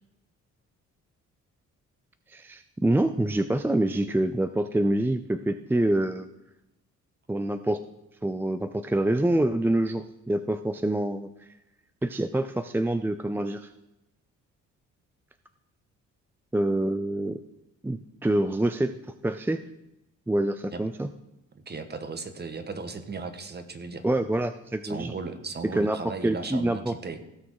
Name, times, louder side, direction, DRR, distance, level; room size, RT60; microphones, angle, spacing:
voice 1, 2.3-6.3 7.3-7.8 8.2-11.3 12.0-13.7 16.5-17.4 17.8-18.9 19.2-19.6 20.3-21.1 24.0-25.1 25.8-26.0 26.2-26.9, right 1 dB, 5° right, 10 dB, 0.4 m, -26 dB
voice 2, 21.5-24.0 24.8-27.2, right 4 dB, 35° right, 8 dB, 1.4 m, -36 dB
16.5 x 6.2 x 4.8 m, 0.91 s
cardioid pair, 90°, 30 cm